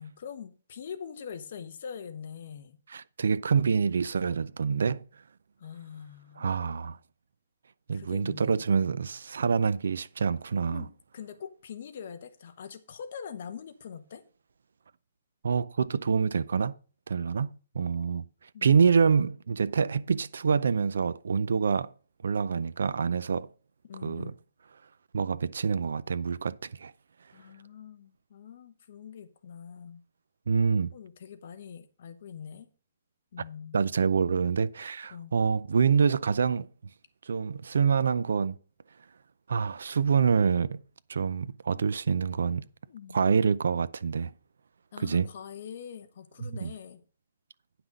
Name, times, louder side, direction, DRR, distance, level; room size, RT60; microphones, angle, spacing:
voice 1, 0.0-2.8 5.6-7.0 7.9-8.6 10.7-14.2 18.5-18.8 23.9-24.4 27.3-30.0 30.9-32.7 33.3-33.8 35.1-35.3 42.9-43.2 44.9-47.0, left 7 dB, 40° left, 1.0 m, -43 dB
voice 2, 2.9-5.1 6.4-7.0 7.9-10.8 15.4-16.8 17.1-17.5 17.7-18.3 18.6-21.9 22.2-23.5 24.0-24.3 25.1-26.9 30.5-30.9 33.7-36.7 37.3-38.6 39.5-40.8 41.1-42.6 43.1-44.3 45.0-45.3 46.4-46.7, right 6 dB, 75° right, 0.5 m, -26 dB
9.6 x 5.9 x 5.1 m
hypercardioid pair, 175°, 0 cm